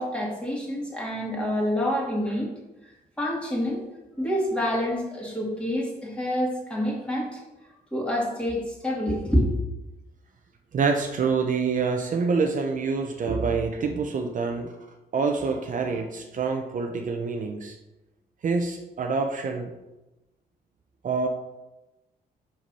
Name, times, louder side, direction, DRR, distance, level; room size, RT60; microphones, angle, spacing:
voice 1, 0.0-2.5 3.2-3.8 4.2-7.4 7.9-9.5, equal, 5° left, -3 dB, 2.4 m, -27 dB
voice 2, 10.7-14.7 15.1-17.8 18.4-19.7 21.0-21.3, right 4 dB, 50° right, 3 dB, 0.8 m, -26 dB
5.8 x 5.2 x 5.5 m, 1.0 s
cardioid pair, 95°, 17 cm